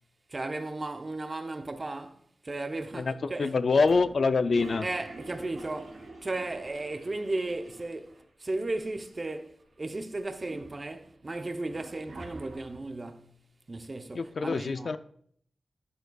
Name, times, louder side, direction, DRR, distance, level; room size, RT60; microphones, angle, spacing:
voice 1, 0.3-3.6 4.8-13.3 13.7-15.0, right 2 dB, 30° right, 0.6 m, -35 dB
voice 2, 2.9-4.9 14.1-15.0, left 4 dB, 55° left, 0.4 m, -25 dB
Toilet flush, 3.8-8.2 8.5-8.6 8.8-9.6 10.1-12.9, right 2 dB, 75° right, 2.3 m, -47 dB
10.5 x 6.5 x 2.3 m
wide cardioid pair, 125°, 0 cm